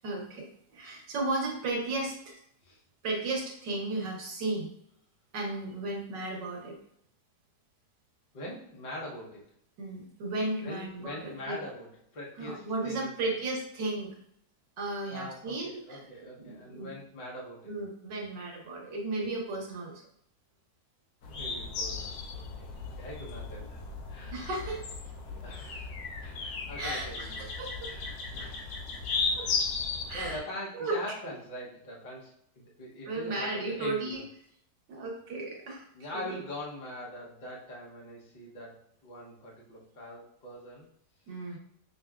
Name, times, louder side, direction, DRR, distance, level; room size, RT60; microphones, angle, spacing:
voice 1, 0.0-2.4 3.0-4.7 5.3-6.8 9.8-11.6 12.4-14.2 14.8-16.9 17.7-20.0 24.3-24.9 26.8-27.9 29.4-29.6 30.1-30.4 30.7-31.0 33.1-34.2 34.9-35.8 36.1-36.4 41.3-41.6, right 2 dB, 85° right, 0 dB, 1.6 m, -35 dB
voice 2, 8.3-9.4 10.6-13.4 15.1-17.7 21.3-23.8 24.1-24.5 25.4-27.5 27.9-28.8 29.1-29.6 30.1-34.2 35.9-40.9 41.3-41.6, left 1 dB, 35° left, -4 dB, 0.8 m, -43 dB
sound 1, 21.2-30.4, left 4 dB, 70° left, 1.1 m, -35 dB
6.3 x 2.2 x 2.3 m, 0.69 s
omnidirectional pair, 1.9 m